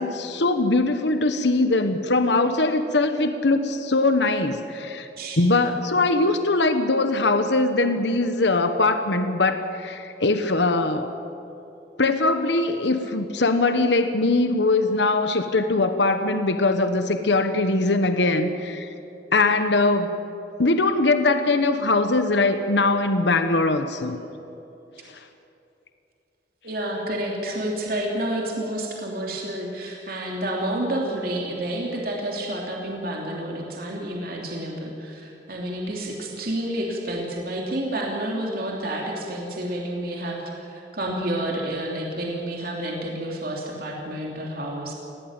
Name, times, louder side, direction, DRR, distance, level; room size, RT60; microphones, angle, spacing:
voice 1, 0.0-5.1 5.4-11.1 12.0-18.9 19.3-20.1 20.6-24.2, left 2 dB, 70° left, 8 dB, 1.2 m, -21 dB
voice 2, 26.6-44.9, right 1 dB, 55° right, -1 dB, 3.0 m, -29 dB
20.5 x 17.0 x 8.9 m, 2.8 s
head